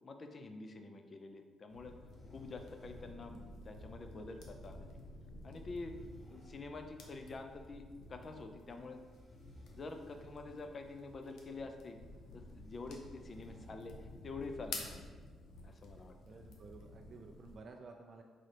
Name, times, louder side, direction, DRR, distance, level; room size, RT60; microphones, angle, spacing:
voice 1, 0.0-1.9 2.3-5.0 5.4-6.0 6.3-9.0 9.7-12.0 12.3-15.0 15.6-16.2, left 3 dB, 40° left, 6 dB, 0.5 m, -47 dB
sound 1, 1.7-17.6, left 2 dB, 80° left, 0.7 m, -52 dB
sound 2, 2.1-16.9, equal, 10° left, 1.0 m, -67 dB
voice 2, 15.8-18.2, right 3 dB, 50° right, 2 dB, 0.3 m, -54 dB
4.2 x 3.8 x 3.3 m, 1.5 s
cardioid pair, 90°, 0 cm